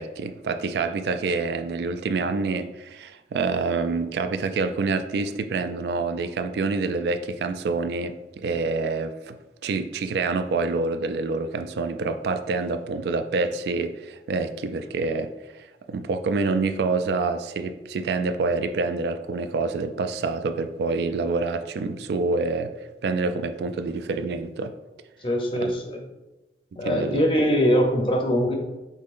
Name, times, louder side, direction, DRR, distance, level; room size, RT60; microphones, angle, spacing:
voice 1, 0.0-9.4 9.6-24.7 25.6-25.7 26.8-27.2, right 4 dB, 70° right, 0.3 m, -27 dB
voice 2, 25.2-26.0 26.8-28.5, equal, 30° left, 0.6 m, -22 dB
5.4 x 3.7 x 2.5 m
head